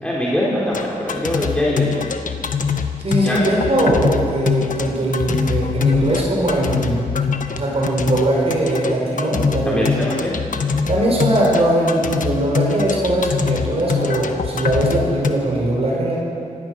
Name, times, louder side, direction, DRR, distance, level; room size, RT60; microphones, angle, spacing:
voice 1, 0.0-2.0 3.2-3.4 9.7-10.3, left 1 dB, 5° left, -6 dB, 3.6 m, -22 dB
sound 1, 0.7-15.3, left 6 dB, 65° left, 1.3 m, -23 dB
voice 2, 3.0-7.0 7.5-10.1 10.9-16.2, right 1 dB, 45° right, -3 dB, 5.1 m, -20 dB
25.5 x 16.5 x 6.3 m, 2.6 s
wide cardioid pair, 105°, 15 cm